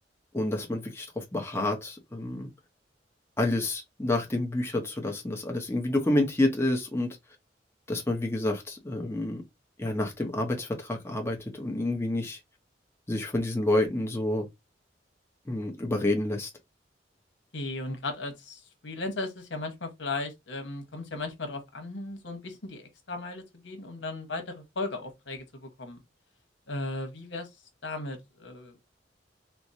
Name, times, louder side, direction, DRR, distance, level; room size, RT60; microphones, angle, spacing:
voice 1, 0.3-2.5 3.4-7.2 7.9-9.4 9.8-12.4 13.1-14.5 15.5-16.5, left 1 dB, 15° left, 0.7 m, -28 dB
voice 2, 17.5-26.0 26.7-27.5 27.8-28.8, left 2 dB, 90° left, 1.1 m, -36 dB
4.5 x 2.0 x 2.6 m
head